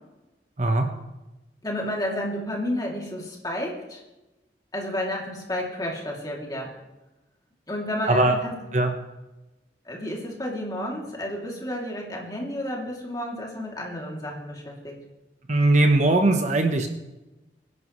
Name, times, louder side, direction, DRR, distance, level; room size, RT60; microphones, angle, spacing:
voice 1, 0.6-0.9 8.0-8.4 8.7-8.9 15.5-16.9, right 2 dB, 40° right, 5 dB, 1.1 m, -20 dB
voice 2, 1.6-4.0 4.7-6.7 7.7-8.5 9.8-15.0, left 1 dB, 20° left, -2 dB, 2.8 m, -31 dB
22.5 x 11.0 x 3.2 m, 1.0 s
head